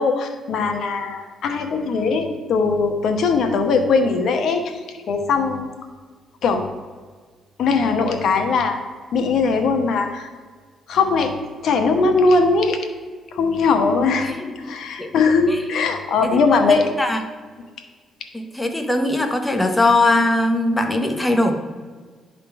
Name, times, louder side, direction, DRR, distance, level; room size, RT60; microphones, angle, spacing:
voice 1, 0.0-4.7 5.1-5.6 6.4-6.6 7.6-8.8 9.1-10.3 10.9-11.3 11.6-12.8 13.3-14.3 14.6-16.9, left 4 dB, 70° left, 5 dB, 1.1 m, -20 dB
voice 2, 14.0-14.3 15.0-15.1 15.5-15.6 16.3-17.2 18.3-21.5, left 2 dB, 10° left, 5 dB, 1.0 m, -20 dB
11.0 x 3.8 x 4.7 m, 1.5 s
cardioid pair, 90°, 0 cm